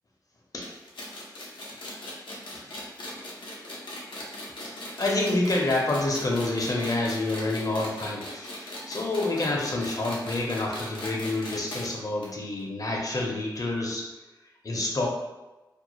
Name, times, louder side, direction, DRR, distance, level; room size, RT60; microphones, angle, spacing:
sound 1, 0.6-11.9 12.2-12.3 12.6-12.7 13.6-13.7, left 1 dB, 85° left, 0.6 m, -39 dB
voice 1, 4.6-14.1 14.6-15.1, left 2 dB, 45° left, -2 dB, 0.7 m, -28 dB
2.4 x 2.1 x 3.0 m, 1.1 s
cardioid pair, 40°, 8 cm